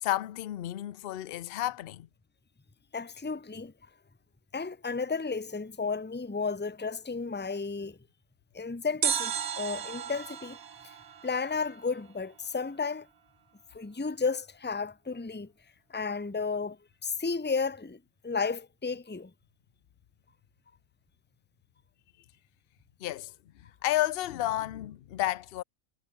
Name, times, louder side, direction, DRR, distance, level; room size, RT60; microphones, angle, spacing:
voice 1, 0.0-2.1 23.0-25.6, left 14 dB, 55° left, 0.7 m, -32 dB
voice 2, 2.9-3.7 4.5-8.0 8.5-10.6 10.8-10.9 11.2-13.1 13.7-15.5 15.9-19.3, left 4 dB, 10° left, 0.9 m, -33 dB
sound 1, 9.0-12.1 12.4-12.5, right 8 dB, 80° right, 1.7 m, -34 dB
omnidirectional pair, 1.5 m